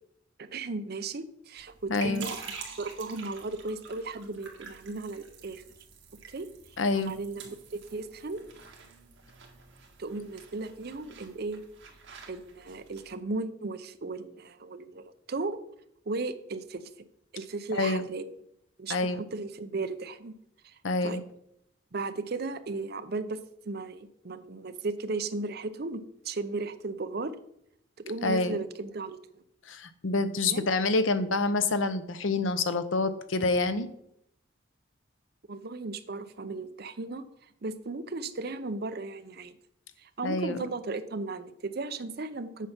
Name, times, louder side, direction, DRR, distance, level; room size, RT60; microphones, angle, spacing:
voice 1, 0.4-2.4 2.8-5.6 6.3-6.5 7.0-8.4 10.0-11.6 12.3-15.6 16.1-17.1 17.3-18.2 18.8-20.3 20.6-20.8 21.0-21.2 21.9-23.4 23.6-27.3 28.0-29.2 30.5-30.7 35.5-37.3 37.6-39.6 40.0-42.7, right 3 dB, 55° right, 11 dB, 0.7 m, -36 dB
sound 1, 1.6-13.1, right 5 dB, 75° right, 1.7 m, -47 dB
voice 2, 1.9-2.2 6.8-7.1 17.7-18.0 18.9-19.2 20.8-21.2 28.2-28.6 29.7-33.9 40.2-40.6, left 3 dB, 85° left, 11 dB, 0.8 m, -27 dB
8.3 x 5.6 x 6.0 m, 0.73 s
head